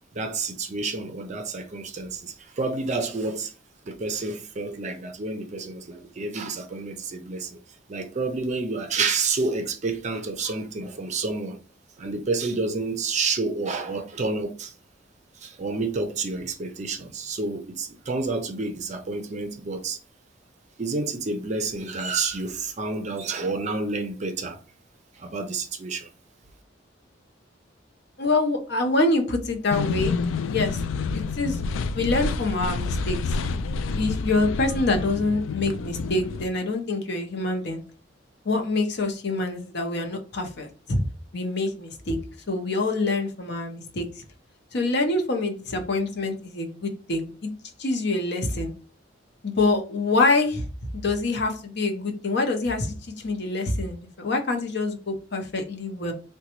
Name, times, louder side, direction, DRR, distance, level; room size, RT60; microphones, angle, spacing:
voice 1, 0.1-3.5 3.9-7.6 7.9-11.6 12.0-14.7 15.4-20.0 20.8-24.6 25.2-26.1, right 3 dB, 40° right, 0.5 m, -29 dB
voice 2, 28.2-30.1 30.4-30.8 31.1-31.6 31.9-33.3 33.9-37.8 38.4-41.0 41.3-42.2 42.5-44.2 44.7-47.5 47.8-48.7 49.4-50.7 50.9-56.1, left 2 dB, 60° left, 0.7 m, -26 dB
sound 1, 29.7-36.5, left 4 dB, 85° left, 0.3 m, -28 dB
3.8 x 2.2 x 2.9 m
head